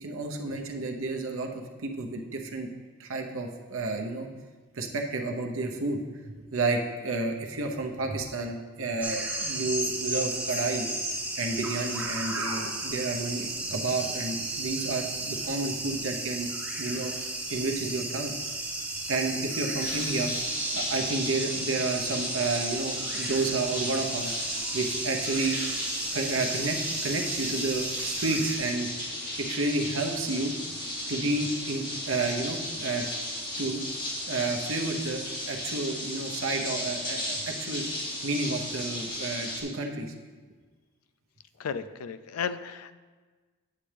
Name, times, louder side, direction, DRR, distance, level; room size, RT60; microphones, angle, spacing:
voice 1, 0.0-2.7 3.0-4.3 4.7-10.9 11.3-16.5 16.8-17.1 17.5-18.3 19.1-20.3 20.7-24.3 24.7-25.6 26.1-28.9 29.4-30.5 31.1-33.1 33.6-33.8 34.3-35.2 35.5-37.8 38.2-40.1, right 3 dB, 65° right, 3 dB, 0.8 m, -31 dB
sound 1, 9.0-28.6, right 2 dB, 10° right, 1.0 m, -34 dB
sound 2, 19.8-39.6, left 1 dB, 40° left, 2.2 m, -35 dB
voice 2, 41.6-42.9, left 6 dB, 85° left, 12 dB, 0.4 m, -34 dB
8.4 x 7.5 x 3.4 m, 1.4 s
head